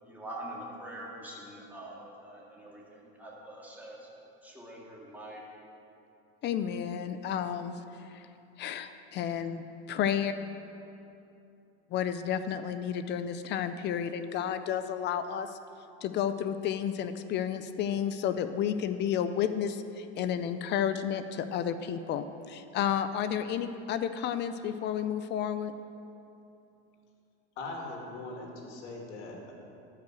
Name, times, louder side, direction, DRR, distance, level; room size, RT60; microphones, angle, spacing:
voice 1, 0.0-5.4, right 1 dB, 5° right, -4 dB, 2.1 m, -45 dB
voice 2, 6.4-7.7 8.1-8.2 8.6-10.3 11.9-15.5 16.0-25.7, left 9 dB, 35° left, 10 dB, 0.5 m, -31 dB
voice 3, 27.6-29.5, left 2 dB, 85° left, 0 dB, 2.6 m, -40 dB
12.5 x 5.8 x 7.7 m, 2.7 s
supercardioid pair, 140°, 34 cm